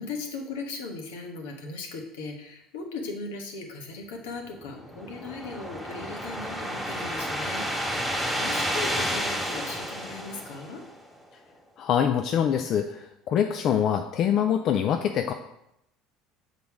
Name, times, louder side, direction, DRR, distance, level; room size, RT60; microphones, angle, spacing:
voice 1, 0.0-7.9 8.3-10.8, left 3 dB, 80° left, 3 dB, 1.2 m, -38 dB
sound 1, 4.5-11.1, equal, ahead, 1.8 m, -31 dB
voice 2, 11.8-15.3, left 8 dB, 55° left, 6 dB, 0.4 m, -24 dB
6.7 x 4.1 x 4.7 m, 0.83 s
hypercardioid pair, 80°, 0 cm